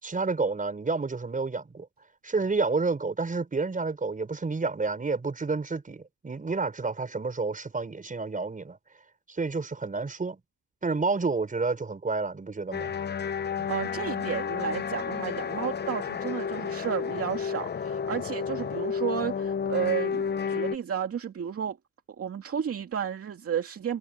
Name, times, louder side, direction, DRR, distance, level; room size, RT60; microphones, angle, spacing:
voice 1, 0.0-1.9 2.2-8.8 9.3-10.4 10.8-12.9 13.6-13.7, right 4 dB, 25° right, 5.3 m, -29 dB
sound 1, 12.7-20.8, left 6 dB, 35° left, 0.9 m, -31 dB
voice 2, 13.7-21.8 22.2-24.0, right 8 dB, 50° right, 2.3 m, -32 dB
cardioid pair, 90°, 30 cm